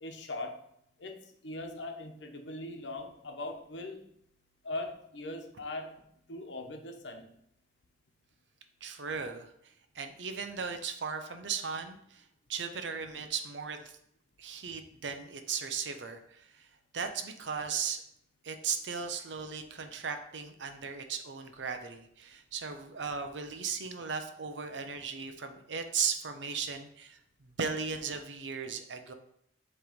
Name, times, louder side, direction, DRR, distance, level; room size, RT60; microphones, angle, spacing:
voice 1, 0.0-0.7 1.0-4.1 4.6-6.0 6.3-7.3, left 2 dB, 85° left, 4 dB, 1.0 m, -40 dB
voice 2, 8.8-9.5 9.9-12.2 12.5-13.9 14.4-16.7 16.9-18.0 18.4-29.1, right 6 dB, 85° right, 7 dB, 0.7 m, -37 dB
7.7 x 3.3 x 5.1 m, 0.73 s
head